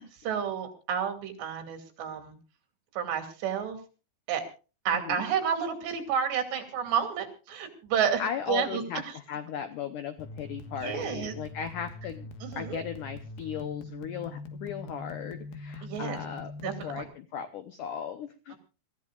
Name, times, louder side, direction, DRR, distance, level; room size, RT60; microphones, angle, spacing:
voice 1, 0.0-2.4 3.0-3.8 4.3-4.4 4.9-8.2 8.5-8.8 10.8-11.3 12.4-12.8 15.8-16.2 16.6-17.1, right 8 dB, 75° right, 5 dB, 4.7 m, -30 dB
voice 2, 8.2-18.5, left 8 dB, 85° left, 9 dB, 1.8 m, -37 dB
sound 1, 10.2-17.0, left 2 dB, 65° left, 3.0 m, -42 dB
26.5 x 15.0 x 2.5 m, 0.35 s
omnidirectional pair, 5.1 m